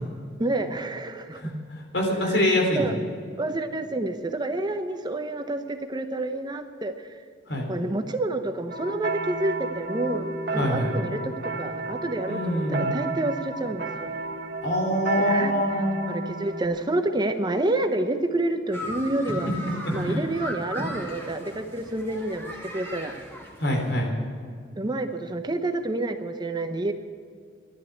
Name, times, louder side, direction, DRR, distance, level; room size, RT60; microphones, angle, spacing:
voice 1, 0.4-1.4 2.2-2.4 2.7-3.0 3.4-7.1 7.7-14.1 15.2-15.5 16.1-19.5 19.9-23.1 24.8-26.9, right 2 dB, 25° right, 7 dB, 0.8 m, -28 dB
voice 2, 1.3-2.8 7.5-7.7 10.5-10.9 12.3-12.9 14.6-16.0 19.8-20.3 23.6-24.1, equal, 75° left, 1 dB, 3.8 m, -25 dB
sound 1, 8.7-16.6, right 3 dB, 55° right, 1.3 m, -32 dB
sound 2, 18.7-23.9, equal, 10° left, 2.5 m, -36 dB
13.5 x 11.5 x 8.4 m, 2.2 s
head